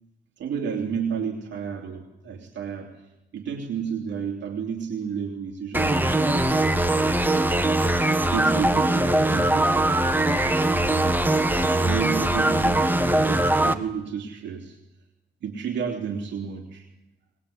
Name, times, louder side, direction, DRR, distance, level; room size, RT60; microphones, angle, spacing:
voice 1, 0.4-2.9 3.3-6.3 8.1-10.1 11.5-14.8 15.4-16.9, right 7 dB, 80° right, 2 dB, 3.0 m, -31 dB
sound 1, 5.7-13.7, right 1 dB, 10° right, 1.5 m, -21 dB
21.0 x 20.5 x 8.5 m, 0.93 s
cardioid pair, 100°, 18 cm